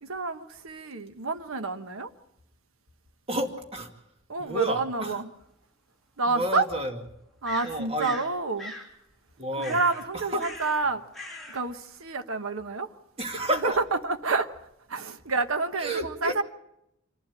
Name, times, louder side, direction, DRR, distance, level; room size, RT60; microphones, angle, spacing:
voice 1, 0.0-2.1 4.3-5.3 6.2-6.6 7.4-8.7 9.6-11.0 11.5-12.9 13.4-13.7 14.0-14.5 14.9-16.4, right 3 dB, 75° right, 1.1 m, -29 dB
voice 2, 3.3-3.9 4.4-5.2 6.3-7.0 7.6-8.2 9.4-9.8 10.1-10.5 13.2-13.8 15.8-16.4, right 1 dB, 30° right, 2.3 m, -30 dB
sound 1, 5.4-5.5 7.4-8.3 8.6-8.9 9.6-10.1 10.4-10.8 11.1-11.6, left 2 dB, ahead, 3.4 m, -40 dB
26.5 x 12.0 x 8.9 m
head